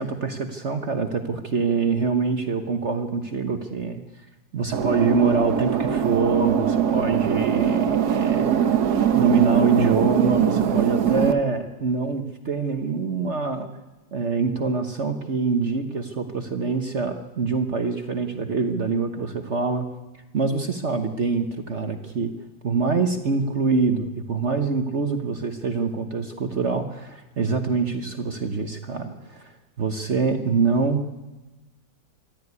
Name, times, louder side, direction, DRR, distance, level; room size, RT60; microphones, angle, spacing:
voice 1, 0.0-4.0 4.5-8.7 9.1-13.7 14.1-19.9 20.3-22.3 22.6-29.5 29.8-31.1, right 4 dB, 45° right, 6 dB, 1.3 m, -25 dB
sound 1, 4.7-11.3, right 8 dB, 65° right, 1.5 m, -22 dB
25.5 x 12.5 x 9.6 m, 1.1 s
omnidirectional pair, 1.9 m